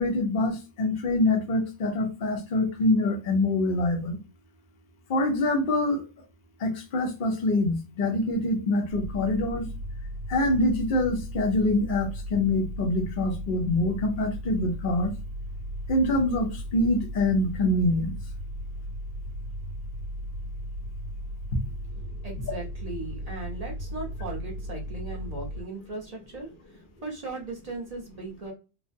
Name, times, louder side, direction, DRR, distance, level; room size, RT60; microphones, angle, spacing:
voice 1, 0.0-4.2 5.1-6.1 6.6-9.7 10.3-15.2 15.9-18.1, left 2 dB, 55° left, 0.6 m, -25 dB
sound 1, 8.9-25.6, equal, 80° right, 1.1 m, -36 dB
voice 2, 21.6-28.5, right 2 dB, 40° right, 0.5 m, -38 dB
3.2 x 2.1 x 2.6 m
omnidirectional pair, 1.8 m